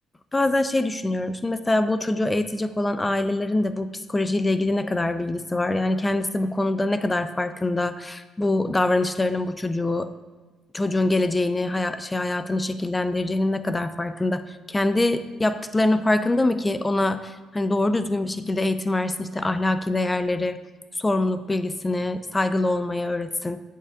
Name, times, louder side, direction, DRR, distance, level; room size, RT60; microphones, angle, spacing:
voice 1, 0.3-10.1 10.7-20.6 21.0-23.6, left 2 dB, 20° left, 11 dB, 0.4 m, -24 dB
8.2 x 7.3 x 2.3 m, 1.3 s
supercardioid pair, 65°, 0 cm